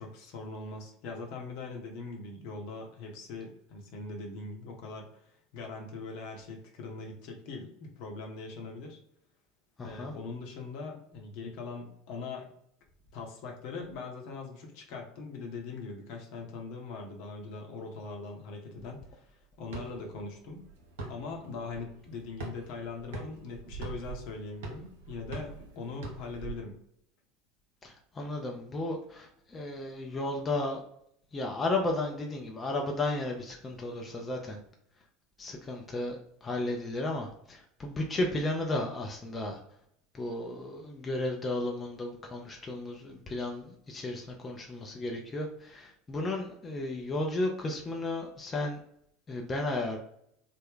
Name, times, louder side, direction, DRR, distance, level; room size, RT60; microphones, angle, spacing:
voice 1, 0.0-9.0 9.8-12.5 13.1-20.7 21.1-26.8, left 4 dB, 55° left, 1 dB, 0.8 m, -41 dB
voice 2, 9.8-10.1 28.2-30.8 31.3-34.6 35.4-36.2 36.4-39.6 40.1-48.8 49.3-50.0, left 2 dB, 25° left, 1 dB, 0.5 m, -33 dB
sound 1, 19.7-26.5, right 3 dB, 65° right, 0.7 m, -43 dB
3.3 x 2.0 x 3.6 m, 0.71 s
figure-of-eight pair, 75°, 0 cm